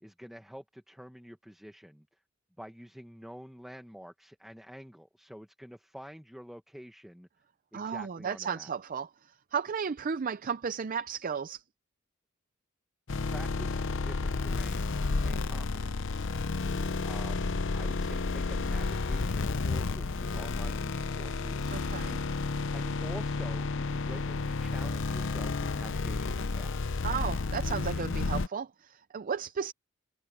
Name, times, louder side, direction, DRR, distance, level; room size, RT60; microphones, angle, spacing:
voice 1, 0.0-2.1 2.6-7.3 7.7-8.7 13.3-16.2 17.0-21.7 22.7-27.1, equal, ahead, 1.1 m, -48 dB
voice 2, 7.7-11.6 21.7-22.2 27.0-29.7, right 6 dB, 40° right, 0.5 m, -34 dB
sound 1, 13.1-28.5, left 3 dB, 65° left, 0.7 m, -31 dB
head